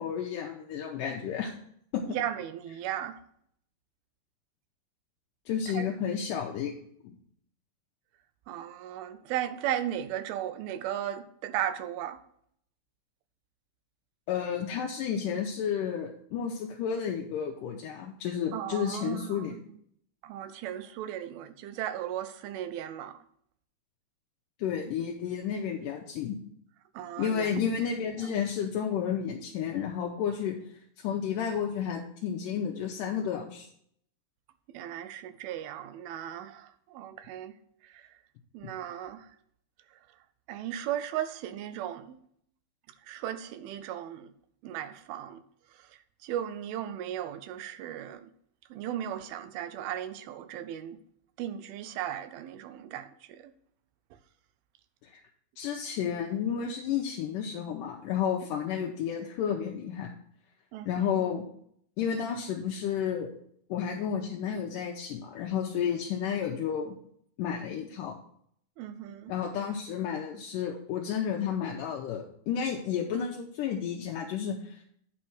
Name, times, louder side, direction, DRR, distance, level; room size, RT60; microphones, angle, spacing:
voice 1, 0.0-1.5 1.9-2.0 5.5-6.7 7.0-7.2 14.3-19.5 24.6-26.4 27.2-30.6 31.0-33.7 55.0-55.2 55.6-60.1 60.9-61.4 62.0-63.3 63.7-67.0 67.4-68.1 69.3-74.9, left 8 dB, 80° left, 2.0 m, -31 dB
voice 2, 2.1-3.2 5.7-6.0 8.5-12.2 18.5-19.8 20.2-23.2 27.0-27.7 28.2-28.3 34.7-37.5 37.9-38.1 38.5-39.3 40.5-42.2 43.1-44.3 44.6-45.4 46.2-48.3 48.7-51.0 51.4-53.5 58.8-58.9 60.7-61.1 68.8-69.3, right 11 dB, 85° right, 2.4 m, -36 dB
9.4 x 4.4 x 5.9 m
omnidirectional pair, 4.3 m